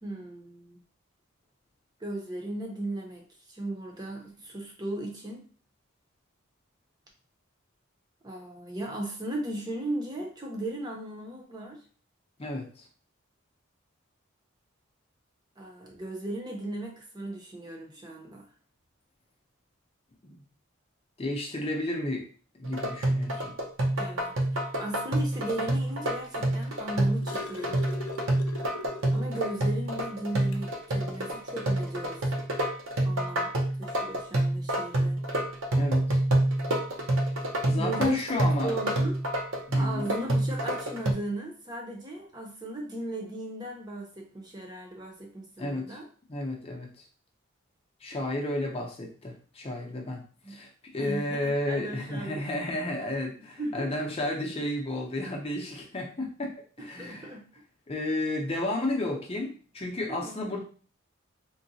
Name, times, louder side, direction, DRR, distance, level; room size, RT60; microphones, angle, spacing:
voice 1, 0.0-0.8 2.0-5.4 8.2-11.8 15.6-18.5 23.9-27.9 29.1-32.3 33.0-33.5 33.8-35.2 37.8-39.2 39.7-46.1 50.4-50.7 51.0-52.4 53.6-54.1 56.8-57.5 60.1-60.5, right 1 dB, 20° right, 0 dB, 0.6 m, -37 dB
voice 2, 12.4-12.8 20.2-20.4 21.2-22.3 22.6-23.5 35.7-36.2 37.7-38.7 39.7-40.1 45.6-46.0 46.3-47.0 48.0-50.2 50.5-56.5 56.8-57.3 57.9-60.6, left 1 dB, 25° left, 0 dB, 0.6 m, -32 dB
sound 1, 22.6-41.1, right 1 dB, 70° right, 0.6 m, -28 dB
sound 2, 26.7-29.6 30.0-30.1 30.5-30.7 31.8-31.9, left 3 dB, 80° left, 0.4 m, -41 dB
3.7 x 2.1 x 2.7 m, 0.41 s
head